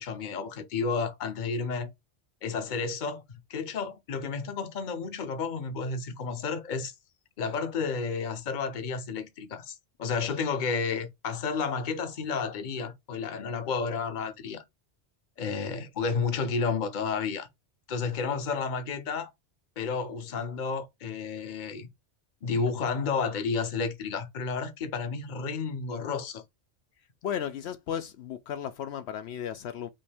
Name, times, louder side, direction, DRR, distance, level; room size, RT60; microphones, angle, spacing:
voice 1, 0.0-1.9 2.4-3.2 3.5-6.9 7.4-14.6 15.4-17.5 17.9-19.3 19.8-21.9 22.4-26.4, left 5 dB, 45° left, 0.8 m, -31 dB
voice 2, 27.2-29.9, left 9 dB, 75° left, 0.8 m, -34 dB
5.3 x 2.6 x 3.4 m
omnidirectional pair, 1.2 m